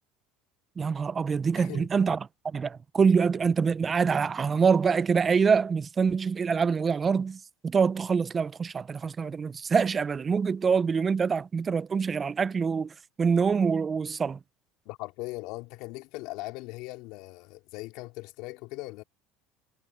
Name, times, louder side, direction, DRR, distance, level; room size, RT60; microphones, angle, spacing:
voice 1, 0.8-12.9 13.2-14.4, right 5 dB, 25° right, 0.3 m, -25 dB
voice 2, 1.6-1.9 14.8-19.0, left 21 dB, 70° left, 3.4 m, -39 dB
supercardioid pair, 130°, 0 cm